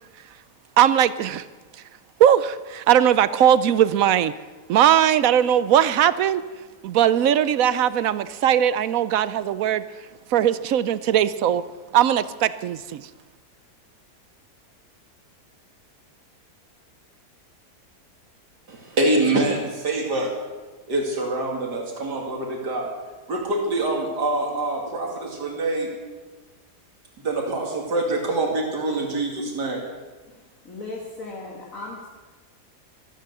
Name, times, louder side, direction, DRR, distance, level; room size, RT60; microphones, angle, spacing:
voice 1, 0.8-1.4 2.2-4.3 4.7-6.4 6.8-9.8 10.3-11.6 11.9-13.0, right 10 dB, 65° right, 15 dB, 0.9 m, -19 dB
voice 2, 18.7-20.3 20.9-22.9 23.3-25.9 27.2-29.9, right 2 dB, 90° right, 0 dB, 3.0 m, -25 dB
voice 3, 30.6-32.1, left 2 dB, 55° left, -2 dB, 2.3 m, -36 dB
14.5 x 13.5 x 6.7 m, 1.3 s
omnidirectional pair, 1.7 m